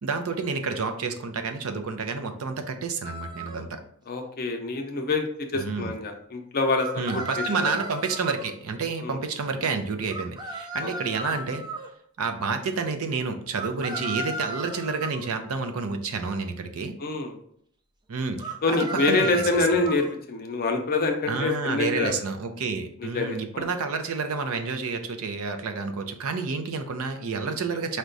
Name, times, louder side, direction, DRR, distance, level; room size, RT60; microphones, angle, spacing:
voice 1, 0.0-3.8 5.5-5.9 7.0-11.6 12.2-16.9 18.1-18.8 19.1-19.2 19.7-19.8 21.3-28.0, right 4 dB, 70° right, 7 dB, 0.5 m, -29 dB
sound 1, 3.0-3.6 6.8-8.5 10.1-11.9 13.5-15.3 18.4-20.1, right 1 dB, 20° right, 0.4 m, -35 dB
voice 2, 4.1-5.3 5.5-6.9 7.1-7.8 9.0-9.2 17.0-17.3 18.6-22.1 23.0-23.7, left 3 dB, 40° left, 4 dB, 0.6 m, -26 dB
4.7 x 2.2 x 3.8 m, 0.66 s
head